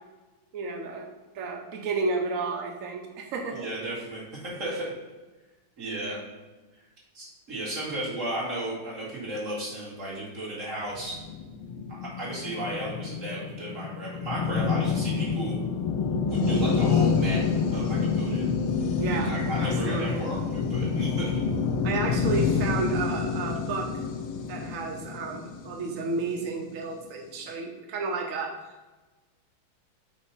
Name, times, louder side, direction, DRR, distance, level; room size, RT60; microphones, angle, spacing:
voice 1, 0.5-1.1 1.3-3.7 19.0-19.3 19.6-20.3 21.8-23.9 24.5-28.9, right 3 dB, 75° right, 2 dB, 0.7 m, -32 dB
voice 2, 3.5-4.9 5.8-6.2 7.1-11.2 11.9-15.6 16.2-17.4 17.7-18.5 19.2-21.4, right 1 dB, 40° right, -5 dB, 2.1 m, -34 dB
sound 1, 11.0-26.4, left 5 dB, 90° left, 1.5 m, -28 dB
6.8 x 2.7 x 5.4 m, 1.2 s
omnidirectional pair, 2.3 m